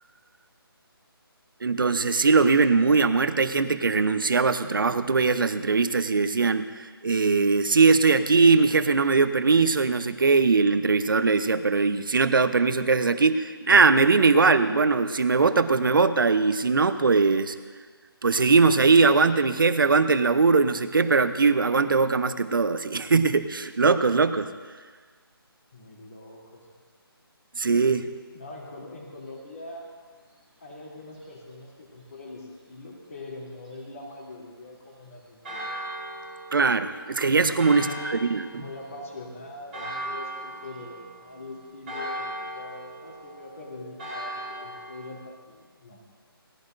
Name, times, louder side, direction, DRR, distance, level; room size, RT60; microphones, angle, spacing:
voice 1, 1.6-17.6 18.2-24.5 27.6-28.1 36.5-38.6, right 4 dB, 60° right, 11 dB, 0.8 m, -21 dB
voice 2, 25.7-26.7 28.3-29.9 30.6-35.7 37.3-46.0, left 2 dB, 35° left, -3 dB, 2.9 m, -42 dB
Church bell, 35.4-45.1, right 1 dB, 5° right, 2.8 m, -38 dB
19.0 x 15.0 x 2.6 m, 1.5 s
hypercardioid pair, 175°, 13 cm